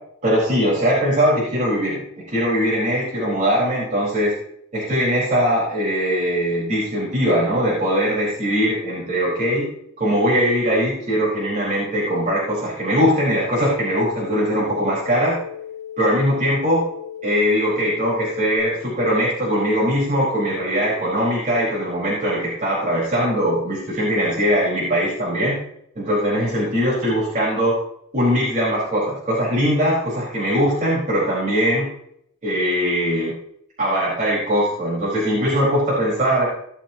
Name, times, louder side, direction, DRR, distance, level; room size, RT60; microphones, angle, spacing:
voice 1, 0.2-4.3 4.7-9.7 10.0-15.4 16.0-16.8 17.2-25.6 25.9-27.7 28.1-31.9 32.4-33.3 33.8-36.5, equal, 35° right, -8 dB, 4.6 m, -21 dB
sound 1, 13.6-18.6, left 9 dB, 70° left, 2.3 m, -36 dB
17.5 x 7.4 x 2.9 m, 0.71 s
head